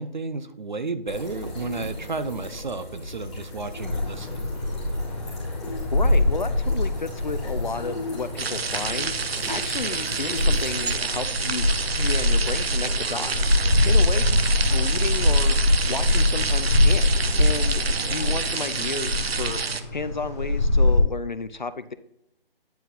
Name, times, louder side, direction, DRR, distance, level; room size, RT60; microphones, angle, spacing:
voice 1, 0.0-4.5, right 3 dB, 50° right, 12 dB, 0.6 m, -32 dB
sound 1, 1.1-10.9, left 2 dB, ahead, 2.4 m, -37 dB
sound 2, 3.8-21.0, left 2 dB, 30° left, 1.8 m, -24 dB
voice 2, 5.9-11.7 11.9-15.6 15.9-21.9, left 4 dB, 50° left, 13 dB, 0.4 m, -33 dB
sound 3, 8.4-19.8, right 5 dB, 85° right, 0.8 m, -29 dB
9.2 x 4.5 x 3.9 m, 0.81 s
hypercardioid pair, 180°, 30 cm